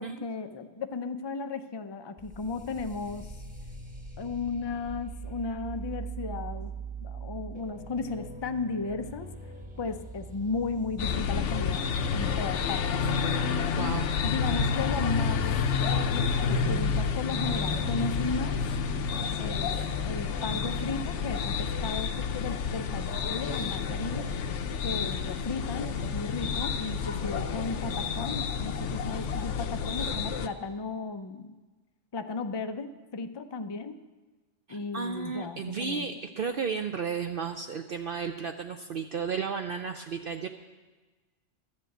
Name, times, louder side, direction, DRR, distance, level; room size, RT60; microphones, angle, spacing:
voice 1, 0.0-3.4 4.2-6.7 7.0-9.3 9.8-11.8 12.1-13.0 14.2-15.4 15.8-18.6 19.4-19.7 20.1-24.3 24.8-31.6 32.1-34.0 34.7-36.1, left 4 dB, 40° left, 8 dB, 0.3 m, -35 dB
sound 1, 2.2-12.8, right 4 dB, 5° right, 1.0 m, -42 dB
sound 2, 11.0-30.5, left 6 dB, 70° left, 1.0 m, -29 dB
voice 2, 13.8-14.1 34.7-40.5, right 6 dB, 60° right, 6 dB, 0.6 m, -33 dB
13.0 x 7.5 x 7.9 m, 1.3 s
omnidirectional pair, 1.3 m